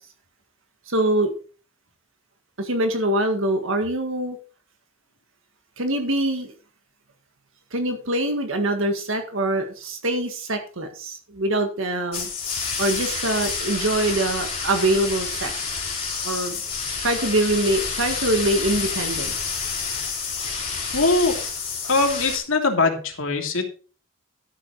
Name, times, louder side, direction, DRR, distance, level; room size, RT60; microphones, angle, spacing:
voice 1, 0.9-1.3 2.6-4.4 5.8-6.5 7.7-12.3 12.8-15.5 16.2-16.6 17.0-19.3, right 1 dB, 65° right, 5 dB, 1.8 m, -24 dB
sound 1, 12.1-22.4, left 5 dB, 25° left, 3.9 m, -29 dB
voice 2, 20.9-21.4 21.8-23.7, left 3 dB, 65° left, 3 dB, 2.8 m, -21 dB
12.5 x 7.3 x 4.8 m, 0.37 s
head